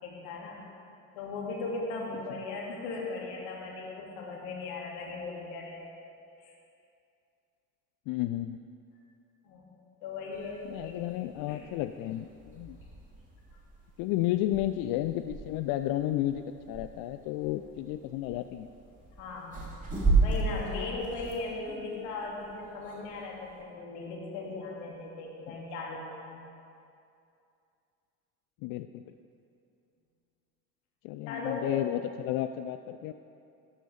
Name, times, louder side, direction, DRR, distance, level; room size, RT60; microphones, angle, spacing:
voice 1, 0.0-0.7 1.1-5.9 6.4-6.5 9.4-9.8 10.0-11.0 11.5-11.7 19.2-19.6 20.2-26.4 31.3-31.8, left 3 dB, 65° left, -2 dB, 2.4 m, -38 dB
voice 2, 8.1-8.7 10.7-12.8 14.0-18.7 25.5-25.6 28.6-29.0 31.0-33.1, left 14 dB, 50° left, 10 dB, 0.5 m, -32 dB
sound 1, 10.3-23.6, right 3 dB, 15° right, 3.4 m, -35 dB
13.5 x 12.5 x 3.4 m, 2.5 s
figure-of-eight pair, 55°, 46 cm